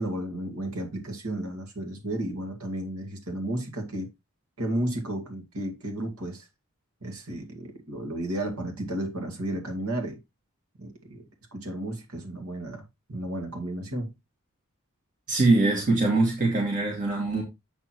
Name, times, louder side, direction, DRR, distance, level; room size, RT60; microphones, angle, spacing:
voice 1, 0.0-4.1 4.6-6.5 7.0-10.2 10.8-11.2 11.5-12.8 13.1-14.1, right 1 dB, 80° right, 2.3 m, -33 dB
voice 2, 15.3-17.4, right 2 dB, 40° right, 2.6 m, -23 dB
8.6 x 4.5 x 4.5 m
head